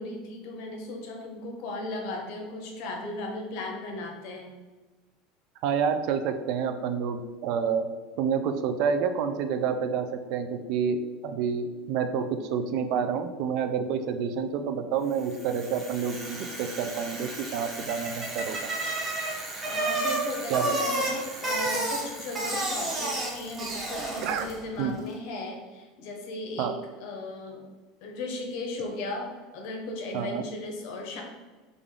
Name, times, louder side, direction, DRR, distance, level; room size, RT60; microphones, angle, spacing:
voice 1, 0.0-4.5 19.6-27.6 28.0-31.2, left 2 dB, 55° left, 1 dB, 0.7 m, -36 dB
voice 2, 5.6-7.9 8.2-18.6 20.5-20.8 24.2-24.5 24.8-25.0 26.6-26.7 30.1-30.4, right 6 dB, 50° right, 8 dB, 0.3 m, -28 dB
Bicycle, 15.2-24.6, right 2 dB, 15° right, 0.7 m, -32 dB
3.5 x 2.4 x 3.6 m, 1.3 s
cardioid pair, 170°, 0 cm